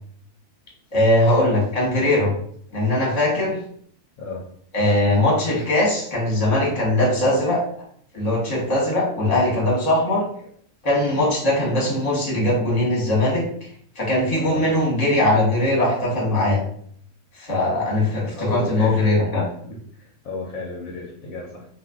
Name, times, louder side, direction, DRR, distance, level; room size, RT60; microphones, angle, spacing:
voice 1, 0.9-2.3 2.7-3.6 4.7-7.6 8.1-10.2 10.8-13.4 13.9-16.6 17.3-19.4, left 1 dB, 30° left, -4 dB, 1.1 m, -20 dB
voice 2, 14.4-14.7 18.3-19.0 19.6-21.7, left 2 dB, 65° left, -2 dB, 1.0 m, -33 dB
2.5 x 2.5 x 3.5 m, 0.64 s
omnidirectional pair, 1.6 m